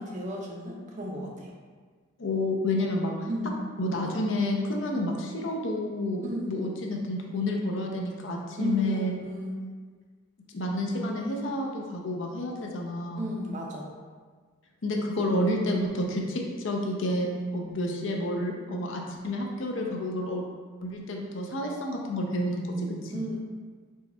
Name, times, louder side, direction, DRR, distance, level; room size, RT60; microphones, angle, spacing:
voice 1, 0.0-1.5 3.3-3.6 6.2-6.6 8.6-9.6 13.1-13.9 23.1-23.4, equal, 35° right, -1 dB, 0.5 m, -34 dB
voice 2, 2.2-3.3 3.8-9.1 10.5-13.3 14.8-20.4 20.8-23.1, left 1 dB, 60° left, 0 dB, 0.6 m, -30 dB
4.5 x 2.3 x 4.2 m, 1.5 s
head